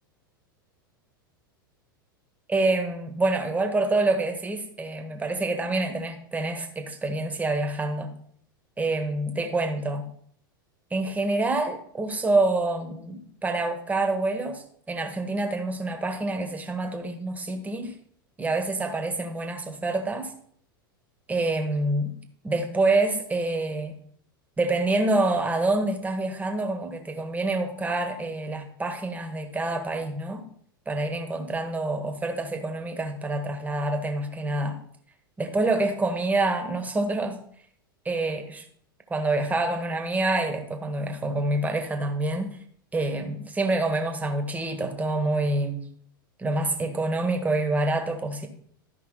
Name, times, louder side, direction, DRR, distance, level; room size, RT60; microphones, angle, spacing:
voice 1, 2.5-8.1 8.8-10.0 10.9-17.9 18.4-20.3 21.3-22.1 22.4-24.0 24.6-30.4 30.9-34.8 35.4-37.4 38.0-38.6 39.1-42.6 42.9-45.8 46.4-48.5, right 2 dB, 15° right, 1.6 m, -27 dB
13.0 x 5.2 x 4.1 m
hypercardioid pair, 95°, 12 cm